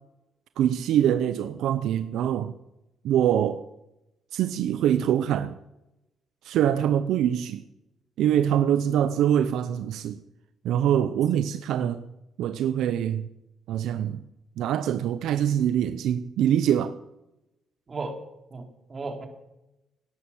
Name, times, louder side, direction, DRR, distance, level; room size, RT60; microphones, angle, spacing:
voice 1, 0.6-2.5 3.0-3.7 4.3-5.6 6.4-7.6 8.2-10.2 10.6-12.0 12.4-13.3 13.7-14.2 14.6-16.9, right 10 dB, 85° right, 0.7 m, -24 dB
voice 2, 18.5-19.3, right 3 dB, 35° right, 3.6 m, -35 dB
17.5 x 10.5 x 7.3 m
cardioid pair, 90°, 0 cm